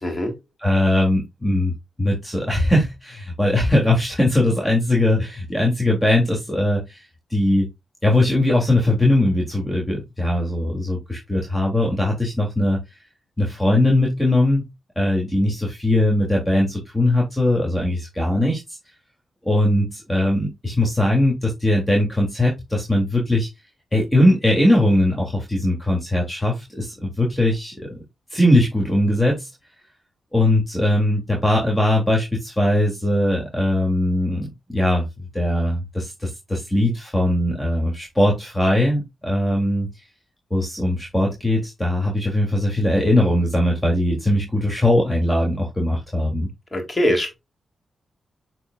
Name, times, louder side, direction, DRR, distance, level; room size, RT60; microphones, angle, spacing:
voice 1, 0.0-0.4 46.7-47.3, equal, 30° left, 3.7 m, -22 dB
voice 2, 0.6-1.7 2.0-7.7 8.0-12.8 13.4-14.7 14.9-18.8 19.4-23.5 23.9-28.0 28.3-29.5 30.3-35.0 35.3-39.9 40.5-46.5, left 1 dB, 15° left, 3.1 m, -20 dB
8.5 x 4.7 x 2.5 m
supercardioid pair, 45°, 0 cm